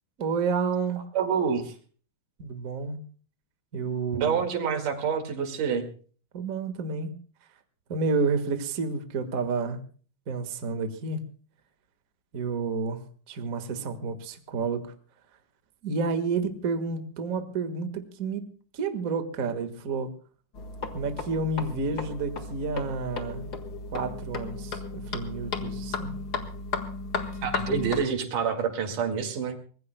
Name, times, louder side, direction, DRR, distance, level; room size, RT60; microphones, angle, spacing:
voice 1, 0.2-1.0 2.4-3.0 3.7-4.4 6.3-7.1 7.9-9.8 10.3-11.2 12.3-14.9 15.8-18.4 18.7-20.1 20.9-23.5 23.9-26.2, right 4 dB, 40° right, 8 dB, 1.4 m, -30 dB
voice 2, 1.2-1.8 4.1-5.9 27.4-29.6, right 6 dB, 90° right, 5 dB, 3.7 m, -27 dB
sound 1, 20.5-28.0, left 4 dB, 40° left, 1.7 m, -35 dB
24.5 x 20.5 x 2.2 m, 0.42 s
omnidirectional pair, 3.6 m